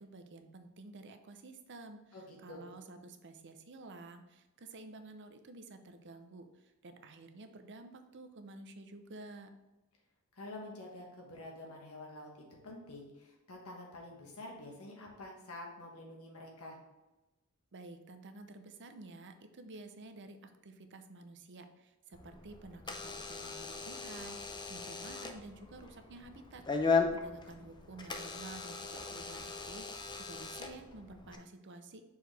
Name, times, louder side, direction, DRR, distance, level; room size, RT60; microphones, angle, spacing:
voice 1, 0.0-2.0 2.4-9.5 17.7-32.0, right 2 dB, 55° right, 7 dB, 0.7 m, -51 dB
voice 2, 2.1-2.6 10.3-12.3 12.6-16.8, left 2 dB, 80° left, -1 dB, 1.4 m, -48 dB
Door / Alarm, 22.1-31.4, left 4 dB, 20° left, 0.6 m, -38 dB
6.3 x 4.7 x 3.4 m, 1.1 s
head